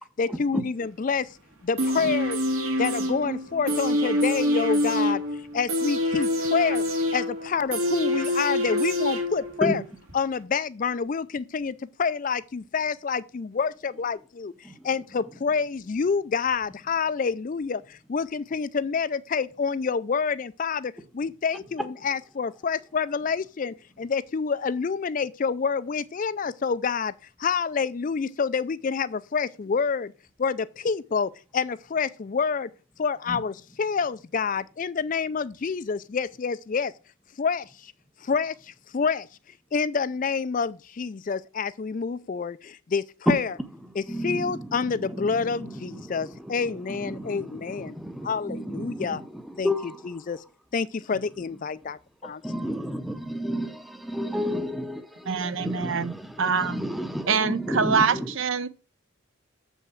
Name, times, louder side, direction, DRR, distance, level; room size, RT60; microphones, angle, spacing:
voice 1, 0.2-1.4 1.6-2.4 2.8-5.2 5.5-6.8 7.1-9.8 10.1-14.5 14.8-27.1 27.4-30.1 30.4-32.7 33.0-36.9 37.4-37.9 38.2-39.3 39.7-43.6 43.9-48.0 48.2-49.2 49.6-50.4 50.7-52.7, left 5 dB, 40° left, 0.3 m, -28 dB
sound 1, 1.8-9.8 10.1-10.2, left 1 dB, 80° right, 2.7 m, -26 dB
voice 2, 44.1-44.6 45.0-45.1 45.6-45.7 45.9-46.1 46.9-47.5 47.8-49.2 49.6-50.0 52.2-58.2, equal, ahead, 0.7 m, -31 dB
voice 3, 55.3-56.8 57.3-58.7, right 5 dB, 65° right, 0.7 m, -25 dB
7.2 x 5.6 x 6.4 m
head